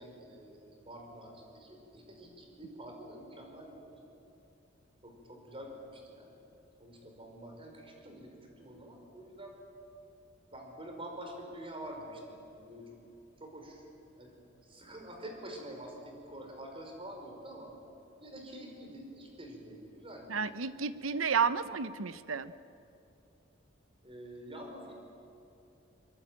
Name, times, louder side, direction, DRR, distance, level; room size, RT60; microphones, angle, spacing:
voice 1, 0.0-4.1 5.0-6.3 6.8-8.3 8.6-9.5 10.5-12.9 13.4-13.8 14.2-14.3 14.7-17.7 18.2-20.4 24.0-25.0, right 1 dB, 30° right, 2 dB, 5.1 m, -47 dB
voice 2, 20.3-22.5, right 6 dB, 85° right, 13 dB, 0.9 m, -31 dB
23.5 x 22.5 x 9.0 m, 2.8 s
head